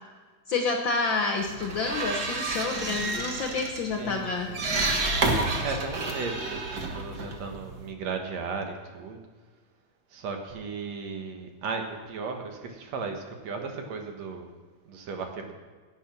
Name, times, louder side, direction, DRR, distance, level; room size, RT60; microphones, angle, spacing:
voice 1, 0.5-4.5, left 4 dB, 80° left, 3 dB, 1.0 m, -29 dB
sound 1, 1.4-7.9, right 3 dB, 45° right, 1.4 m, -30 dB
voice 2, 4.0-4.7 5.6-9.2 10.1-14.5 14.9-15.5, right 4 dB, 65° right, 4 dB, 2.4 m, -35 dB
16.5 x 8.7 x 6.0 m, 1.4 s
omnidirectional pair, 3.6 m